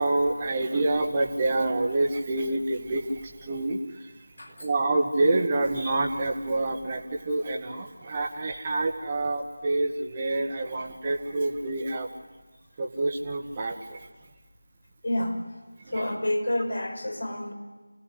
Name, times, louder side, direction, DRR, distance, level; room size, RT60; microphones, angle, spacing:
voice 1, 0.0-4.1 4.6-12.1 12.8-14.1, right 2 dB, 20° right, 2 dB, 1.7 m, -27 dB
voice 2, 4.4-4.7 15.0-15.4 15.9-17.5, left 1 dB, 65° left, 4 dB, 5.0 m, -29 dB
28.0 x 17.0 x 8.4 m, 1.3 s
figure-of-eight pair, 170°, 0 cm